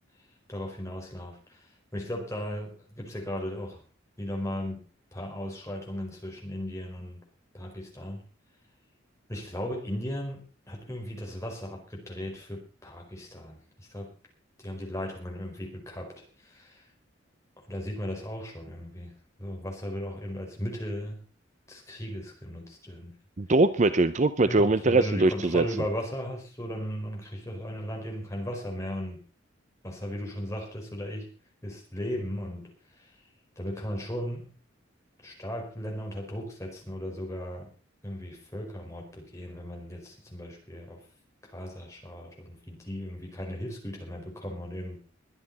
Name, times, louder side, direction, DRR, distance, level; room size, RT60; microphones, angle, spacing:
voice 1, 0.5-1.7 1.9-3.8 4.2-4.8 5.1-7.2 7.5-8.2 9.3-14.1 14.6-16.8 17.7-19.1 19.4-21.2 21.7-23.1 24.5-29.2 29.8-31.3 31.6-32.7 33.0-33.2 33.6-34.5 35.2-37.7 38.0-41.0 41.4-45.0, equal, 15° left, 0 dB, 4.8 m, -36 dB
voice 2, 23.4-25.6, right 2 dB, 35° right, 13 dB, 0.6 m, -22 dB
22.0 x 9.9 x 4.1 m, 0.35 s
head